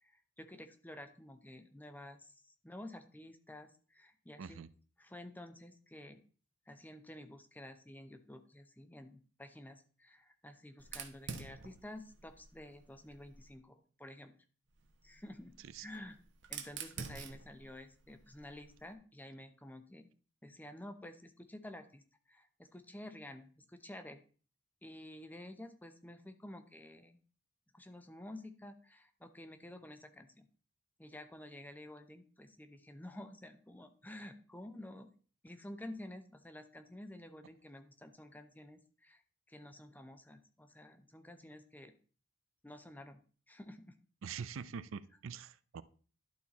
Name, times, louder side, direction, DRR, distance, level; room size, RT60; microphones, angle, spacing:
voice 1, 0.0-4.6 5.0-6.2 6.7-14.3 15.0-15.5 15.8-16.2 16.5-20.1 20.4-22.0 22.3-24.2 24.8-27.2 27.7-30.5 31.0-35.1 35.4-39.2 39.5-41.9 42.6-43.2 43.5-44.0, left 1 dB, 10° left, 9 dB, 0.7 m, -51 dB
voice 2, 4.4-4.7 15.6-15.9 44.2-45.8, right 6 dB, 80° right, 16 dB, 0.5 m, -44 dB
Fire, 10.8-13.6 14.7-18.9, right 6 dB, 65° right, 1.0 m, -49 dB
11.5 x 4.4 x 4.1 m, 0.41 s
head